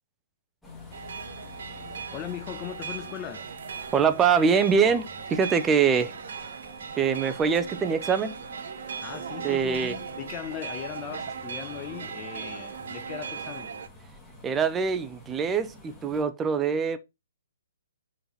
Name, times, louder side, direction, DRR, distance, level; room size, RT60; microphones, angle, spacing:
sound 1, 0.6-16.2, left 2 dB, 5° left, 2.1 m, -49 dB
sound 2, 0.9-13.9, right 6 dB, 55° right, 1.0 m, -38 dB
voice 1, 2.1-3.5 9.0-13.7, left 11 dB, 20° left, 0.7 m, -38 dB
voice 2, 3.9-6.1 7.0-8.3 9.4-9.9 14.4-17.0, right 6 dB, 15° right, 0.8 m, -24 dB
5.6 x 4.2 x 5.6 m
figure-of-eight pair, 130°, 0 cm